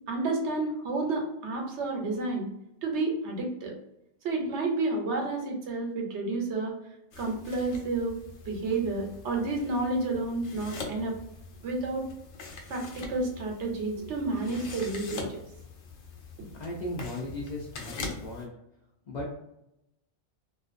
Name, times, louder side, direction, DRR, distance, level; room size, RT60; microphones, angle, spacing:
voice 1, 0.1-2.5 2.8-3.8 4.2-6.7 7.2-8.2 8.5-11.1 11.6-12.0 12.7-15.3, right 3 dB, 80° right, 1 dB, 1.0 m, -30 dB
sound 1, 7.1-18.5, left 3 dB, 85° left, 0.9 m, -43 dB
voice 2, 16.5-18.5 19.1-19.3, left 1 dB, 50° left, -2 dB, 0.6 m, -36 dB
2.5 x 2.3 x 2.5 m, 0.83 s
omnidirectional pair, 1.2 m